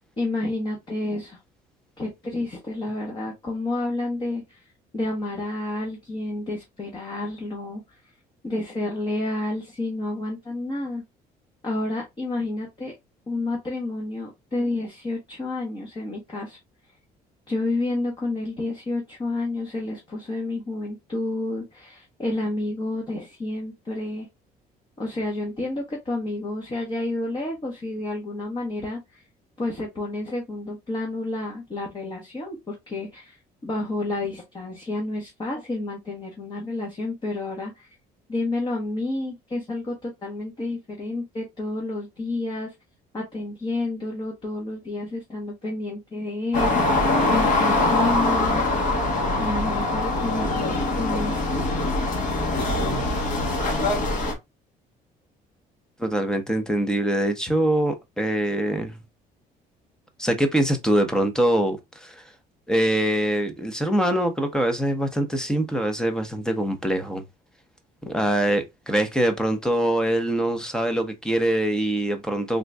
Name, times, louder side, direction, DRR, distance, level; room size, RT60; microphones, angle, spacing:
voice 1, 0.2-1.4 2.0-4.6 4.9-8.0 8.4-11.0 11.6-12.9 13.3-16.6 17.5-24.3 25.0-29.2 29.6-33.3 33.6-37.9 38.3-42.7 43.1-48.6 49.4-51.6, left 2 dB, 25° left, 1.2 m, -30 dB
sound 1, 46.5-54.3, left 2 dB, 50° left, 1.5 m, -23 dB
voice 2, 56.0-59.0 60.2-62.2 62.7-67.2 68.0-72.6, right 1 dB, 5° left, 0.8 m, -23 dB
3.7 x 2.5 x 3.4 m
cardioid pair, 110°, 17 cm